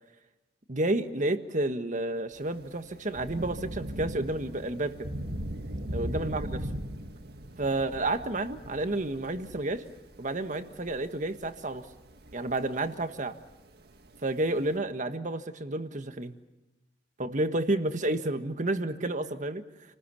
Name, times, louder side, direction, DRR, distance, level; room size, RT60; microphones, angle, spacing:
voice 1, 0.7-5.1 5.9-6.6 7.6-9.9 10.2-11.9 12.3-13.4 14.2-16.3 17.2-19.6, right 2 dB, 45° right, 8 dB, 1.6 m, -30 dB
Thunder / Rain, 2.3-14.7, right 1 dB, 65° right, 1.7 m, -40 dB
29.5 x 20.0 x 7.1 m, 1.0 s
head